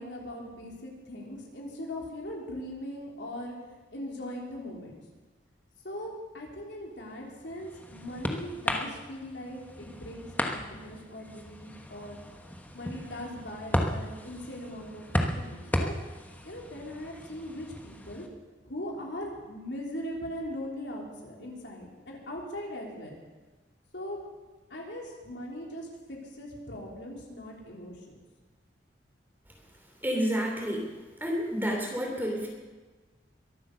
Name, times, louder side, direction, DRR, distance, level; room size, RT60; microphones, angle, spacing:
voice 1, 0.0-3.5 3.9-5.0 5.8-12.2 12.7-15.9 16.4-18.2 18.6-23.1 23.9-24.2 24.7-28.2, left 1 dB, 70° left, -1 dB, 3.5 m, -40 dB
sound 1, 7.2-18.3, left 1 dB, 10° left, 1.2 m, -35 dB
voice 2, 30.0-30.9 31.2-32.5, equal, 10° right, 0 dB, 3.0 m, -29 dB
23.0 x 8.7 x 6.7 m, 1.3 s
head